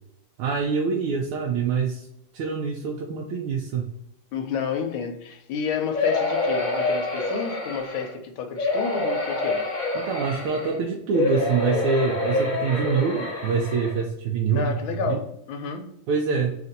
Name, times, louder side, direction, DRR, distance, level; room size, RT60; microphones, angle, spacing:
voice 1, 0.4-2.1 2.3-3.8 9.9-14.8 15.1-15.2 16.1-16.6, right 5 dB, 85° right, 1.5 m, -25 dB
voice 2, 4.3-9.7 14.5-16.0, left 6 dB, 75° left, 1.4 m, -30 dB
sound 1, 5.9-8.1 8.6-10.7 11.1-14.0 14.6-14.7 14.9-15.0, left 2 dB, 25° left, 1.1 m, -26 dB
3.9 x 2.5 x 3.9 m
omnidirectional pair, 2.4 m